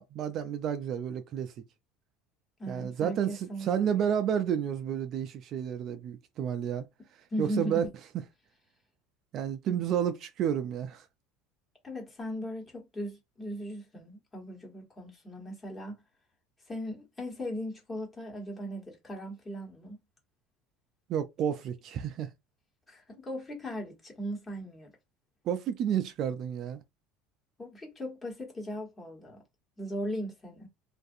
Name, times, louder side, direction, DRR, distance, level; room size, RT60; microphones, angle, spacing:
voice 1, 0.0-1.5 2.7-6.9 7.4-7.9 9.3-11.1 21.1-22.3 25.5-26.8, right 9 dB, 45° right, 0.3 m, -31 dB
voice 2, 2.6-4.1 7.3-7.8 9.7-9.8 11.8-16.0 16.7-20.0 22.9-24.9 27.6-29.4 29.8-30.7, equal, 20° left, 1.2 m, -38 dB
2.5 x 2.3 x 2.6 m
supercardioid pair, 130°, 0 cm